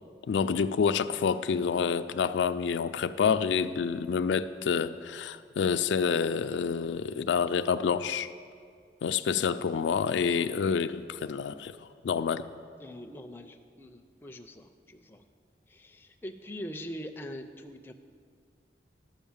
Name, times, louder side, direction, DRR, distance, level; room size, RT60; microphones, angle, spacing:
voice 1, 0.3-8.3 9.0-11.7 12.0-12.4, left 6 dB, 85° left, 11 dB, 0.4 m, -28 dB
voice 2, 12.8-15.2 15.7-17.9, equal, 10° left, 5 dB, 0.4 m, -43 dB
12.5 x 5.4 x 7.2 m, 2.2 s
head